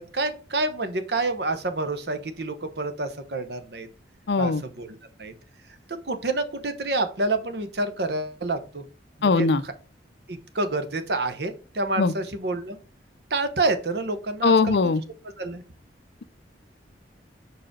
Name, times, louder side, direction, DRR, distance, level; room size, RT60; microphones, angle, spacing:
voice 1, 0.0-3.9 4.4-5.3 5.9-8.8 9.2-9.5 10.3-12.8 13.3-14.8 15.4-15.6, right 2 dB, 60° right, 1.0 m, -28 dB
voice 2, 4.3-4.6 9.2-9.6 12.0-12.1 14.4-15.0, left 4 dB, 60° left, 0.5 m, -20 dB
5.0 x 4.8 x 6.1 m
head